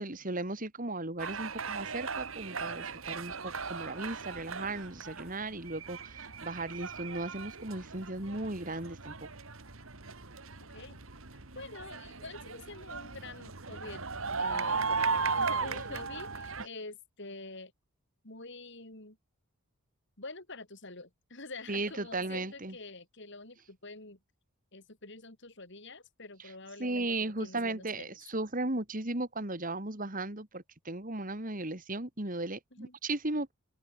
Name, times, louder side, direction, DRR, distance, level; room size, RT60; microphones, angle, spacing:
voice 1, 0.0-9.3 21.7-22.7 26.8-33.5, right 2 dB, 40° right, 2.7 m, -36 dB
sound 1, 1.2-16.7, right 4 dB, 70° right, 2.4 m, -37 dB
voice 2, 11.5-14.1 14.4-17.7 18.2-19.2 20.2-24.2 24.7-28.2 32.7-32.9, left 3 dB, 55° left, 5.2 m, -46 dB
head